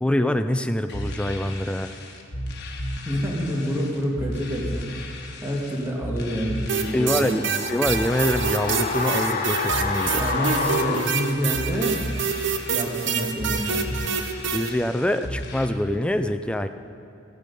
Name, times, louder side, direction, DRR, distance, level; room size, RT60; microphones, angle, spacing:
voice 1, 0.0-1.9 6.9-7.4 7.7-10.2 14.5-16.7, left 1 dB, 5° left, 8 dB, 0.4 m, -25 dB
sound 1, 0.9-15.6, left 1 dB, 60° left, 1.3 m, -34 dB
voice 2, 3.1-4.8 5.4-7.5 10.1-12.0 12.7-13.9, equal, 15° right, -2 dB, 1.8 m, -28 dB
sound 2, 6.7-14.7, right 7 dB, 65° right, 0.7 m, -27 dB
sound 3, 6.9-12.0 12.3-12.4, left 4 dB, 40° left, 0.8 m, -29 dB
15.0 x 8.7 x 5.4 m, 2.8 s
head